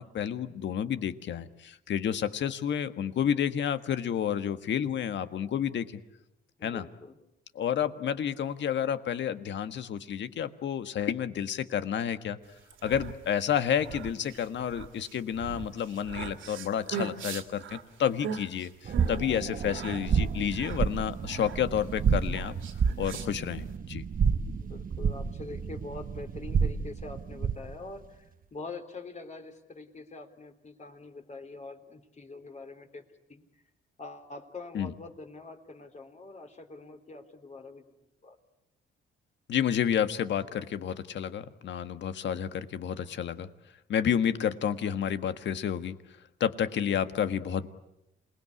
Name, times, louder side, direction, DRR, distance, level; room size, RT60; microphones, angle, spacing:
voice 1, 0.0-5.8 6.6-6.9 7.5-12.4 12.8-22.6 23.0-24.0 34.7-34.9 39.5-43.5 43.9-46.0 46.4-47.7, left 9 dB, 65° left, 11 dB, 1.6 m, -30 dB
voice 2, 6.6-7.2 19.5-19.8 24.3-33.0 33.3-33.5 34.0-37.8 38.2-38.4, left 3 dB, 35° left, 5 dB, 3.5 m, -44 dB
sound 1, 12.6-23.8, right 7 dB, 80° right, 2.5 m, -41 dB
sound 2, 18.9-27.8, right 6 dB, 45° right, 1.0 m, -30 dB
28.0 x 20.0 x 9.8 m, 0.87 s
cardioid pair, 90°, 20 cm